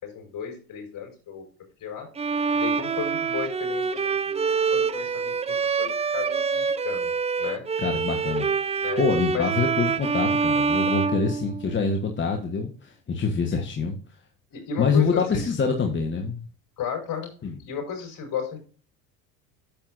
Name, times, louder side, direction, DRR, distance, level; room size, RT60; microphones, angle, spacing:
voice 1, 0.0-1.4 1.8-2.1 2.5-7.1 7.4-7.6 8.8-9.0 9.3-9.5 10.8-10.9 14.5-15.5 16.8-17.3 17.6-18.6, left 7 dB, 45° left, 2 dB, 5.0 m, -34 dB
Bowed string instrument, 2.2-12.0, right 5 dB, 15° right, 0.5 m, -26 dB
voice 2, 7.8-14.0 14.8-16.4 17.4-17.6, left 5 dB, 25° left, 2 dB, 1.2 m, -26 dB
10.5 x 7.5 x 2.6 m, 0.39 s
hypercardioid pair, 80°, 47 cm